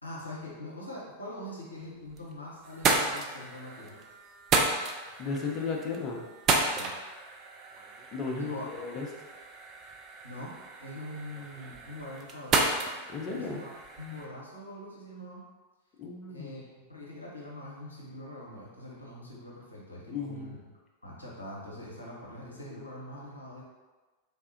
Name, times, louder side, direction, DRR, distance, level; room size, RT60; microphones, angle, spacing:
voice 1, 0.0-4.1 6.8-6.9 8.4-8.7 10.2-12.6 13.2-15.4 16.3-20.6 21.0-23.6, left 1 dB, 85° left, -5 dB, 0.7 m, -43 dB
sound 1, 1.8-2.3 2.6-14.3, right 3 dB, 30° right, 0.3 m, -32 dB
voice 2, 5.2-6.2 8.1-9.1 13.1-13.6 16.0-16.5 20.1-20.6, left 4 dB, 30° left, 0 dB, 0.5 m, -34 dB
3.5 x 2.0 x 2.6 m, 1.3 s
figure-of-eight pair, 90°, 0 cm